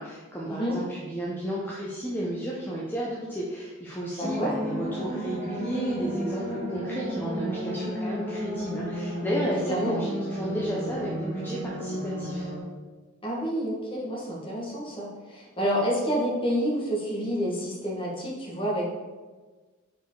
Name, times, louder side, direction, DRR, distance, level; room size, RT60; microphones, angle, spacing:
voice 1, 0.0-12.5, equal, 10° left, -5 dB, 0.7 m, -33 dB
voice 2, 4.2-4.5 9.5-10.1 13.2-18.9, equal, 25° left, -4 dB, 1.6 m, -29 dB
sound 1, 4.2-12.6, equal, 30° right, 1.5 m, -32 dB
4.8 x 4.6 x 4.7 m, 1.3 s
head